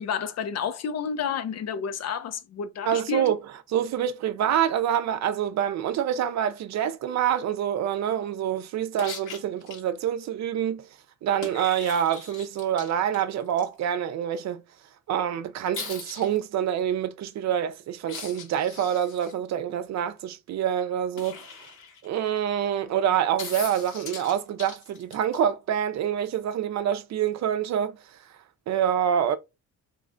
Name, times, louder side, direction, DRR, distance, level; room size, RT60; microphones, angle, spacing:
voice 1, 0.0-3.3, left 7 dB, 60° left, 0.6 m, -30 dB
voice 2, 2.9-3.4 3.7-10.9 11.2-14.6 15.1-21.4 22.0-28.0 28.7-29.4, right 9 dB, 65° right, 0.5 m, -26 dB
sound 1, 9.0-9.8 11.4-13.6 15.7-16.4 18.0-19.3 21.2-22.3 23.4-25.4 27.3-27.4, left 5 dB, 85° left, 1.6 m, -40 dB
3.2 x 3.1 x 2.5 m
cardioid pair, 90°, 30 cm